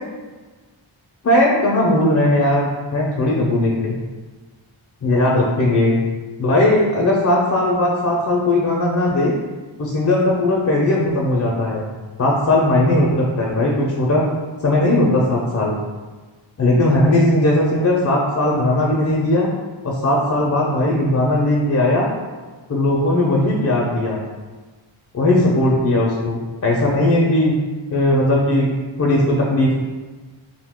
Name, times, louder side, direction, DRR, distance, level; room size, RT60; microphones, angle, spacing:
voice 1, 1.2-3.9 5.0-6.0 6.4-9.3 9.8-11.9 12.2-14.3 14.6-15.8 16.6-19.5 19.8-22.1 22.7-24.2 25.1-27.5 27.9-28.7 29.0-29.8, left 1 dB, 40° left, -2 dB, 0.4 m, -18 dB
2.7 x 2.1 x 3.4 m, 1.3 s
wide cardioid pair, 70°, 47 cm